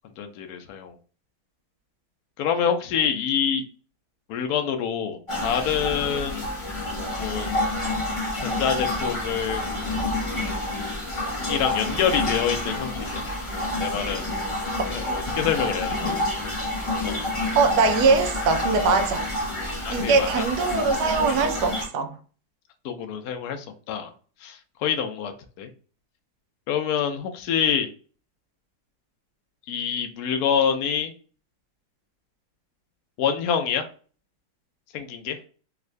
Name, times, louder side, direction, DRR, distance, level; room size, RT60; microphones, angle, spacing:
voice 1, 0.2-0.9 2.4-3.6 4.3-6.4 7.2-7.5 8.4-9.6 11.5-13.2 13.8-14.3 14.8-16.1 17.0-17.2 19.8-20.4 22.8-24.1 24.4-25.3 25.6-25.7 26.7-27.9 29.7-31.1 33.2-33.9 34.9-35.4, left 8 dB, 80° left, 0.8 m, -26 dB
sound 1, 5.3-21.9, left 2 dB, 30° left, 0.5 m, -28 dB
voice 2, 17.5-19.3 19.9-22.2, right 4 dB, 75° right, 0.9 m, -22 dB
3.5 x 2.5 x 3.2 m
omnidirectional pair, 2.3 m